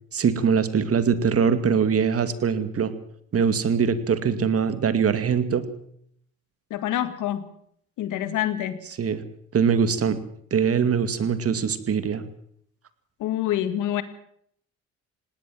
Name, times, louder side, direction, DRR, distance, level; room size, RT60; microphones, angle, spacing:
voice 1, 0.1-2.9 3.3-5.7 9.0-9.2 9.5-10.2 10.5-12.3, right 6 dB, 50° right, 12 dB, 2.3 m, -22 dB
voice 2, 6.7-7.5 8.0-8.8 13.2-14.0, left 12 dB, 90° left, 12 dB, 2.0 m, -26 dB
18.5 x 18.5 x 7.5 m, 0.68 s
cardioid pair, 90°, 30 cm